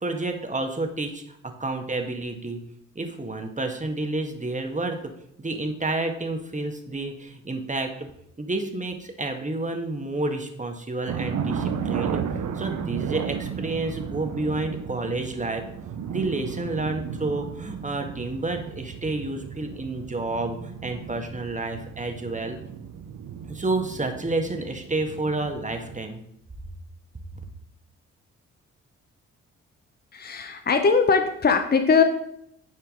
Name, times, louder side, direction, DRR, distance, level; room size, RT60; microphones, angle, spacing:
voice 1, 0.0-2.6 2.9-5.0 5.4-8.1 8.4-12.2 12.5-15.6 16.1-22.6 23.5-26.2, right 2 dB, 20° right, 4 dB, 1.5 m, -30 dB
sound 1, 11.1-26.1, right 7 dB, 55° right, 0.8 m, -34 dB
voice 2, 30.1-32.0, left 5 dB, 30° left, 6 dB, 0.8 m, -20 dB
10.5 x 4.5 x 3.8 m, 0.75 s
hypercardioid pair, 45°, 34 cm